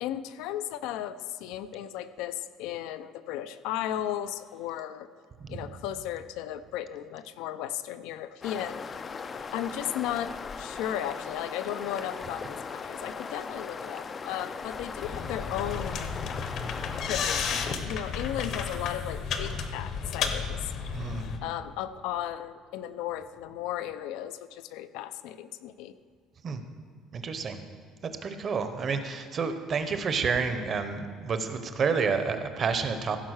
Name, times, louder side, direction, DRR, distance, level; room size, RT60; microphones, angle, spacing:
voice 1, 0.0-5.1 5.5-8.8 9.5-16.1 17.0-17.5 17.9-20.7 21.4-25.9, left 11 dB, 75° left, 12 dB, 0.5 m, -35 dB
Khasaut river, 8.4-17.7, left 5 dB, 25° left, 0.4 m, -38 dB
sound 1, 15.0-21.4, left 6 dB, 50° left, 0.9 m, -33 dB
voice 2, 20.9-21.3 26.4-26.6 27.1-27.6 28.2-33.2, right 5 dB, 30° right, 8 dB, 0.8 m, -29 dB
15.5 x 5.5 x 6.4 m, 2.1 s
cardioid pair, 165°, 0 cm